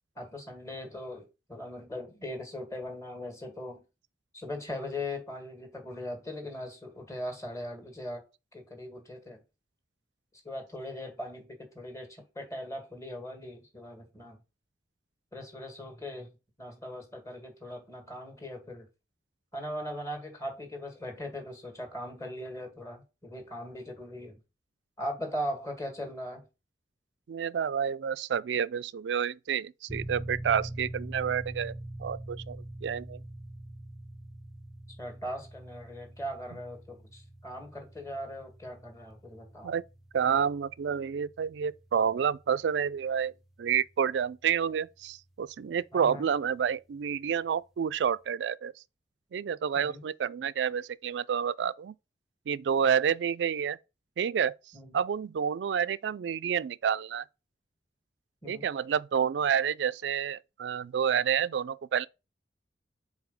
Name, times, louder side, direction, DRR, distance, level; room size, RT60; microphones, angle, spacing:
voice 1, 0.2-3.8 4.3-8.2 8.5-9.4 10.4-14.4 15.3-18.9 19.5-24.4 25.0-26.4 35.0-39.7 45.9-46.3 49.8-50.0 54.7-55.0 58.4-58.7, left 1 dB, 15° left, 1.8 m, -39 dB
voice 2, 27.3-31.7 32.0-33.2 39.6-39.8 40.1-43.3 43.6-48.7 49.3-51.9 52.5-53.8 54.2-54.6 54.9-57.2 58.5-62.1, right 7 dB, 75° right, 0.3 m, -29 dB
sound 1, 29.9-44.3, right 1 dB, ahead, 0.6 m, -44 dB
4.9 x 4.0 x 5.3 m
head